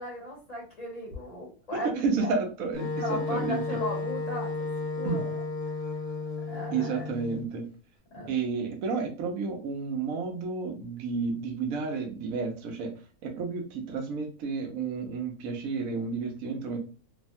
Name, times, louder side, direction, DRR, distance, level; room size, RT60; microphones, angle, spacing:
voice 1, 0.0-1.9 2.2-2.3 2.9-4.5 4.9-5.4 6.4-7.1 8.1-8.3, left 1 dB, 30° left, -4 dB, 0.9 m, -36 dB
voice 2, 1.7-3.8 5.0-5.2 6.7-7.7 8.3-12.9 13.2-16.8, right 4 dB, 70° right, 2 dB, 1.1 m, -31 dB
Wind instrument woodwind instrument, 2.7-7.4, left 4 dB, 65° left, 1.0 m, -33 dB
3.2 x 2.1 x 2.7 m, 0.37 s
omnidirectional pair, 1.6 m